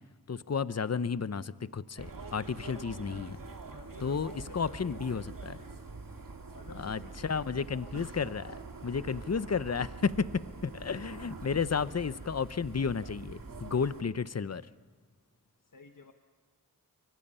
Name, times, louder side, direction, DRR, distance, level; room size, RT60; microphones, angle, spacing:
voice 1, 0.3-3.4 4.0-5.6 6.8-8.5 8.8-10.3 10.6-14.6, left 5 dB, 50° left, 16 dB, 0.8 m, -32 dB
sound 1, 2.0-14.0, right 3 dB, 70° right, 2.0 m, -45 dB
voice 2, 3.7-5.2 6.5-7.7 8.9-9.6 9.9-11.6 15.6-16.1, left 4 dB, 70° left, 5 dB, 1.3 m, -54 dB
29.5 x 24.0 x 5.6 m, 1.5 s
wide cardioid pair, 55°, 34 cm